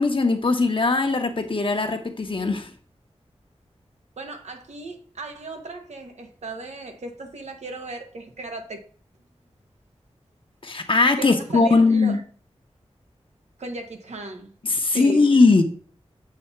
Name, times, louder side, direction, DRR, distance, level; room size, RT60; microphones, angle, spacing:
voice 1, 0.0-2.7 10.6-12.2 14.6-15.6, left 3 dB, 50° left, 0.9 m, -19 dB
voice 2, 4.2-8.8 11.2-12.2 13.6-15.3, right 2 dB, 90° right, 1.1 m, -36 dB
7.6 x 2.8 x 5.6 m
wide cardioid pair, 70°, 11 cm